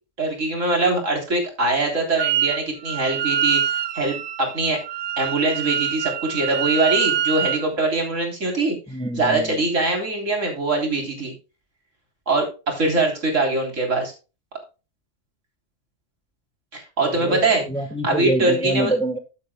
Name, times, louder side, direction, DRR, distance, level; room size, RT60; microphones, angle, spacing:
voice 1, 0.2-4.8 5.2-8.8 9.2-11.3 12.3-14.1 16.7-17.6 18.0-18.9, right 2 dB, 80° right, 2 dB, 3.9 m, -22 dB
Wind instrument woodwind instrument, 2.2-2.6 2.8-7.7, right 10 dB, 60° right, 0.6 m, -25 dB
voice 2, 8.9-9.5 17.0-19.2, right 1 dB, 5° left, 7 dB, 1.2 m, -25 dB
14.0 x 8.3 x 2.2 m, 0.31 s
omnidirectional pair, 1.3 m